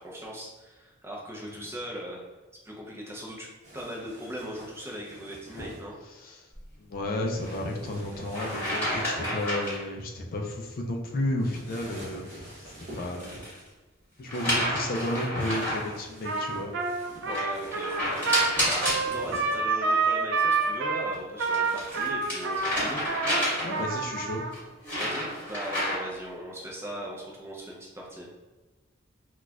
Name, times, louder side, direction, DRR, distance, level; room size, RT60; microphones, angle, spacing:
voice 1, 0.0-2.2 2.6-6.0 17.2-23.0 25.0-28.3, equal, 15° right, -3 dB, 0.5 m, -39 dB
sound 1, 3.6-5.8 7.4-9.3 11.4-13.7 15.4-19.5, right 1 dB, 35° right, 1.0 m, -47 dB
voice 2, 6.1-6.5 6.8-13.4 14.2-16.7 23.6-24.4, left 1 dB, 45° left, 1 dB, 0.4 m, -32 dB
sound 2, 7.3-7.6 8.3-9.8 12.7-13.6 14.3-15.9 17.3-19.0 21.1-23.9 24.5-26.2, equal, 10° left, 1.5 m, -30 dB
Trumpet, 16.2-24.5, right 4 dB, 65° right, 0.4 m, -28 dB
4.1 x 2.2 x 2.3 m, 1.2 s
head